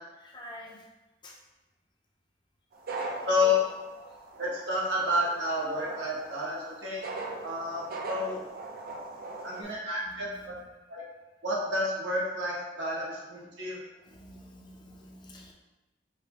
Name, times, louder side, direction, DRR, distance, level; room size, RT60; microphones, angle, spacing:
voice 1, 0.2-0.8 1.2-1.4 3.2-3.3 9.6-9.7 10.0-10.6 14.0-15.5, left 1 dB, 25° left, -1 dB, 0.6 m, -48 dB
sound 1, 2.7-9.6, right 2 dB, 55° right, 0.5 m, -40 dB
voice 2, 3.2-3.6 4.4-7.0 7.4-8.4 9.4-10.5 10.9-11.0 11.4-13.8, left 2 dB, 85° right, -5 dB, 1.2 m, -30 dB
4.8 x 2.0 x 3.3 m, 1.1 s
head